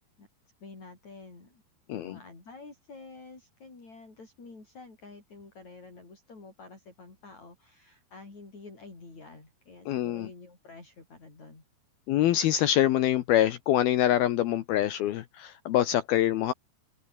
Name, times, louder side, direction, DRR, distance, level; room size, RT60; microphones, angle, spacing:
voice 1, 0.6-1.6 1.9-11.6, left 3 dB, 40° left, 8.9 m, -49 dB
voice 2, 9.9-10.3 12.1-16.5, left 12 dB, 70° left, 2.7 m, -25 dB
omnidirectional pair, 5.0 m